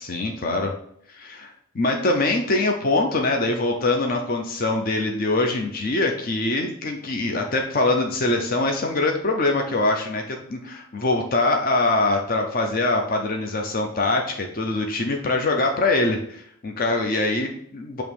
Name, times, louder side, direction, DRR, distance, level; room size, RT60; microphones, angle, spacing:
voice 1, 0.1-0.7 1.1-18.0, left 2 dB, 40° left, 2 dB, 0.6 m, -23 dB
7.0 x 3.0 x 4.8 m, 0.69 s
head